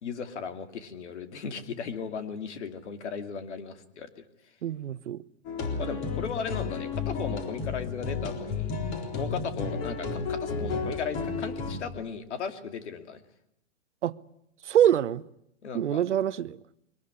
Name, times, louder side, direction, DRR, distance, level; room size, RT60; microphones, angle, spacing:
voice 1, 0.0-4.2 5.8-8.8 9.1-13.2 15.6-16.0, left 6 dB, 75° left, 2.7 m, -36 dB
voice 2, 4.6-5.2 14.0-14.2 14.6-15.2 15.7-16.6, right 10 dB, 90° right, 0.9 m, -25 dB
sound 1, 5.4-11.8, left 4 dB, 35° left, 4.0 m, -32 dB
22.5 x 19.5 x 9.8 m
hypercardioid pair, 140°, 34 cm